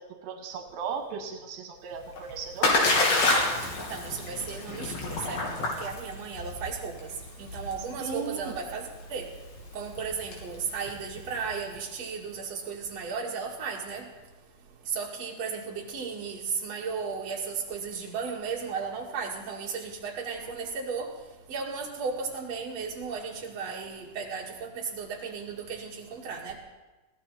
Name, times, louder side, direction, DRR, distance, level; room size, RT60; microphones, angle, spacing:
voice 1, 0.0-2.7 8.0-8.6, right 6 dB, 80° right, 5 dB, 2.9 m, -36 dB
Splash splatter, 1.9-11.8, left 2 dB, 80° left, 4.7 m, -29 dB
voice 2, 3.9-6.9 7.4-8.8 9.1-9.3 9.7-14.0 14.9-21.1 21.5-26.6, right 5 dB, 50° right, -2 dB, 3.3 m, -35 dB
21.0 x 16.0 x 4.2 m, 1.2 s
omnidirectional pair, 4.1 m